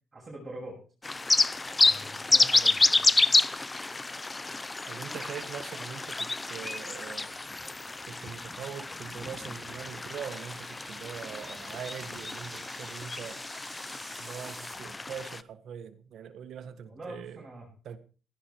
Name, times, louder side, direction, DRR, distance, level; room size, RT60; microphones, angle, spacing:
voice 1, 0.1-0.8 1.7-3.1 16.8-17.7, right 1 dB, 30° right, 7.7 m, -44 dB
sound 1, 1.0-15.4, left 3 dB, 20° left, 0.6 m, -29 dB
sound 2, 3.2-14.7, right 1 dB, ahead, 6.6 m, -51 dB
voice 2, 4.9-7.3 8.1-13.4 14.2-17.4 17.8-18.0, right 8 dB, 70° right, 1.6 m, -42 dB
17.0 x 12.0 x 4.7 m
cardioid pair, 90°, 0 cm